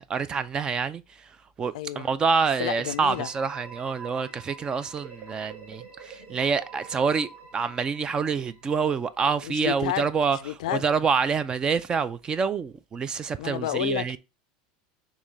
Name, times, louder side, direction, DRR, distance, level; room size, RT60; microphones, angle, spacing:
voice 1, 0.0-10.4 10.7-14.2, right 5 dB, 20° right, 0.3 m, -27 dB
voice 2, 1.7-2.1 2.6-3.3 9.2-10.9 13.4-14.2, left 13 dB, 85° left, 0.3 m, -31 dB
sound 1, 2.3-9.0, right 5 dB, 35° right, 1.3 m, -46 dB
3.6 x 3.1 x 4.0 m
supercardioid pair, 140°, 4 cm